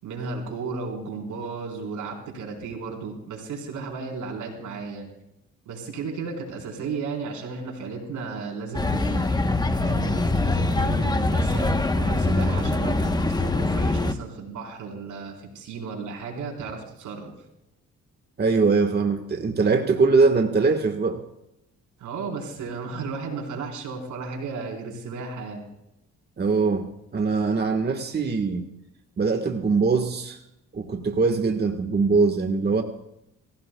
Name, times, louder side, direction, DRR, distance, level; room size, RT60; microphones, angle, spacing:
voice 1, 0.0-5.1 5.7-9.3 9.8-17.3 22.0-25.7, right 4 dB, 85° right, 0 dB, 4.3 m, -34 dB
sound 1, 8.7-14.1, left 2 dB, 15° left, 1.0 m, -23 dB
voice 2, 18.4-21.2 26.4-28.7 29.2-30.4 30.7-32.8, right 4 dB, 35° right, 4 dB, 1.5 m, -22 dB
26.5 x 16.0 x 2.3 m, 0.84 s
cardioid pair, 90°, 30 cm